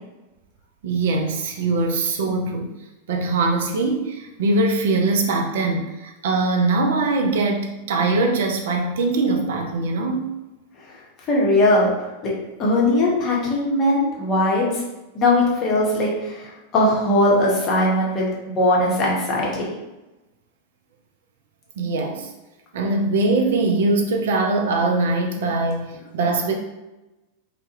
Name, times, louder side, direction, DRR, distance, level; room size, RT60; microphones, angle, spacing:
voice 1, 0.8-2.7 3.1-10.3 15.8-15.9 21.8-22.3 22.7-26.6, right 3 dB, 55° right, 2 dB, 0.3 m, -22 dB
voice 2, 11.3-11.9 12.2-12.3 12.6-14.8 15.1-19.7, left 1 dB, 30° left, -4 dB, 0.7 m, -20 dB
2.2 x 2.0 x 2.9 m, 1.0 s
figure-of-eight pair, 90°, 0 cm